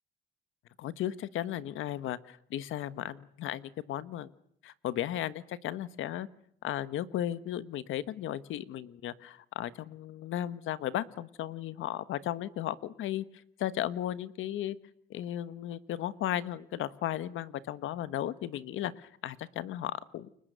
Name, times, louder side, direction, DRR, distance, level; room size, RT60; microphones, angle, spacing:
voice 1, 0.8-4.3 4.6-6.3 6.6-13.2 13.6-14.8 15.1-20.3, left 12 dB, 85° left, 14 dB, 1.4 m, -35 dB
29.5 x 23.0 x 6.9 m, 0.70 s
cardioid pair, 90°, 20 cm